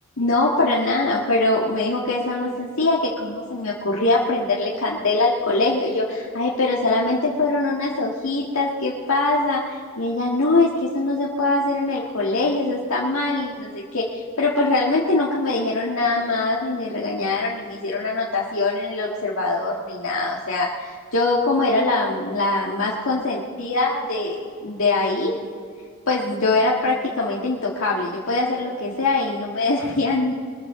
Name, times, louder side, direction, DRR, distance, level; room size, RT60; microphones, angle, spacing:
voice 1, 0.2-25.4 26.1-30.3, left 2 dB, 75° left, -5 dB, 1.8 m, -22 dB
22.0 x 14.5 x 3.8 m, 2.1 s
head